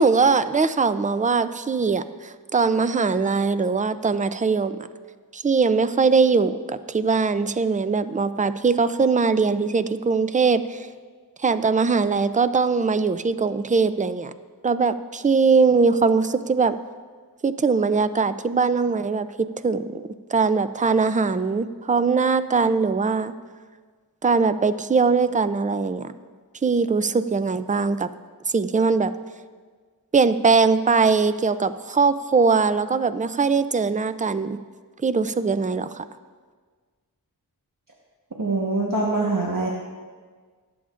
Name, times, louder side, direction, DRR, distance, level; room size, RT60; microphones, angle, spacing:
voice 1, 0.0-4.7 5.3-10.9 11.4-14.3 14.6-16.7 17.4-19.3 19.6-23.3 24.2-26.1 26.6-28.1 28.5-29.1 30.1-34.6 35.0-36.0, right 4 dB, 20° right, 12 dB, 0.4 m, -21 dB
voice 2, 38.4-39.7, right 2 dB, 60° right, -3 dB, 1.4 m, -23 dB
23.0 x 8.6 x 2.5 m, 1.5 s
wide cardioid pair, 50°, 37 cm